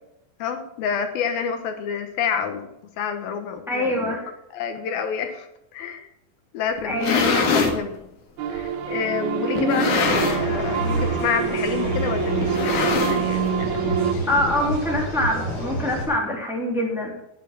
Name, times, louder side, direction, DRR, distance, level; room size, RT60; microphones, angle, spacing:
voice 1, 0.4-4.2 4.5-6.1 6.5-8.0 8.5-14.7, left 7 dB, 75° left, 7 dB, 2.9 m, -29 dB
voice 2, 3.7-4.3 6.8-7.6 9.6-10.1 14.3-17.1, left 1 dB, ahead, -1 dB, 2.9 m, -25 dB
sound 1, 6.8-7.8 8.6-8.7 9.6-10.6 10.9-11.2 11.4-11.5 12.4-13.5, left 4 dB, 60° left, 2.9 m, -23 dB
sound 2, 8.4-14.1, right 8 dB, 85° right, 3.0 m, -26 dB
sound 3, 10.0-16.1, right 1 dB, 35° left, 5.9 m, -29 dB
12.0 x 9.3 x 6.1 m, 0.83 s
omnidirectional pair, 4.4 m